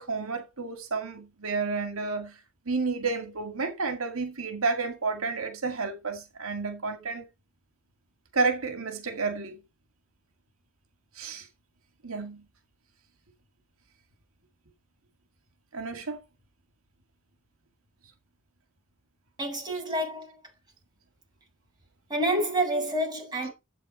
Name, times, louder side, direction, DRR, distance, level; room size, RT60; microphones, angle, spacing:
voice 1, 0.0-2.4 2.7-7.2 8.3-9.6 11.2-11.5 12.0-12.4 15.7-16.2, right 4 dB, 85° right, 2.1 m, -31 dB
voice 2, 19.4-20.4 22.1-23.5, right 1 dB, 20° right, 7.7 m, -28 dB
12.0 x 8.2 x 4.3 m
head